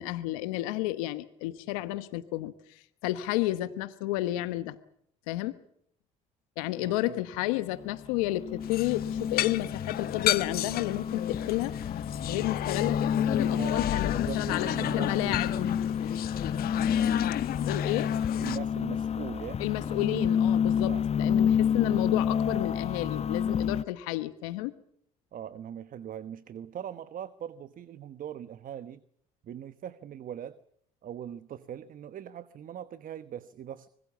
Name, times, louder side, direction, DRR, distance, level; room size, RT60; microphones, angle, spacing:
voice 1, 0.0-4.7 5.3-5.6 6.6-11.7 12.3-15.6 17.7-18.1 19.6-24.7, left 16 dB, 90° left, 12 dB, 1.1 m, -31 dB
voice 2, 6.8-7.2 13.6-15.8 18.4-19.6 20.8-21.0 25.3-29.0 29.4-30.6 31.0-33.9, right 10 dB, 55° right, 14 dB, 1.1 m, -41 dB
sound 1, 7.3-23.8, left 8 dB, 40° left, 0.9 m, -29 dB
sound 2, 8.6-18.6, left 13 dB, 65° left, 1.1 m, -33 dB
25.0 x 20.5 x 7.2 m, 0.70 s
supercardioid pair, 70°, 17 cm